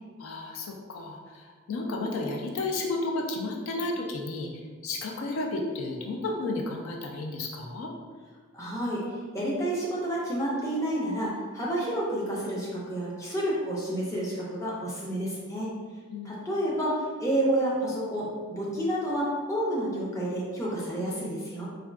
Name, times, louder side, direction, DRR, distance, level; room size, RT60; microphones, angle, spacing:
voice 1, 0.2-4.5 4.8-7.9 16.1-16.4, left 2 dB, 75° left, 1 dB, 0.4 m, -32 dB
voice 2, 8.5-9.0 9.3-15.7 16.2-21.7, right 1 dB, 15° left, -6 dB, 0.5 m, -29 dB
3.5 x 2.2 x 2.3 m, 1.5 s
head